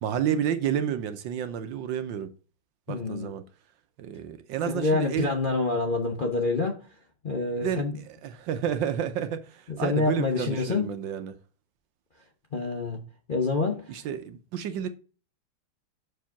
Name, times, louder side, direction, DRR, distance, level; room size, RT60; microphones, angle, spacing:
voice 1, 0.0-2.3 2.9-3.4 4.0-5.3 7.6-7.8 8.2-11.4 13.9-14.9, right 9 dB, 70° right, 1.3 m, -30 dB
voice 2, 2.9-3.3 4.7-6.8 7.2-8.0 9.7-10.9 12.5-13.0 13.3-13.9, left 3 dB, 40° left, 0.7 m, -27 dB
6.4 x 4.8 x 5.8 m
omnidirectional pair, 2.2 m